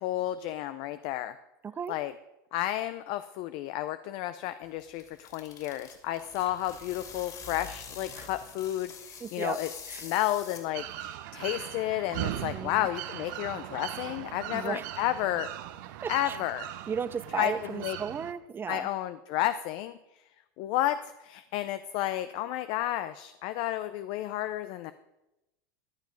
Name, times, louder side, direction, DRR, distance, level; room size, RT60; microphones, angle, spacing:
voice 1, 0.0-1.4 1.9-2.1 2.5-9.7 10.0-15.5 16.1-16.7 17.4-17.5 17.8-18.0 18.7-20.0 20.6-24.9, left 14 dB, 55° left, 12 dB, 0.6 m, -31 dB
voice 2, 1.6-2.0 6.1-6.2 8.2-8.3 9.2-9.6 9.9-10.1 12.3-12.9 14.5-14.9 16.0-16.4 16.9-18.9, right 6 dB, 20° right, 17 dB, 0.5 m, -35 dB
sound 1, 4.6-11.0, left 6 dB, 35° left, 2.5 m, -46 dB
sound 2, 10.7-18.3, right 13 dB, 70° right, 1.0 m, -39 dB
14.0 x 9.3 x 5.3 m, 0.94 s
supercardioid pair, 115°, 11 cm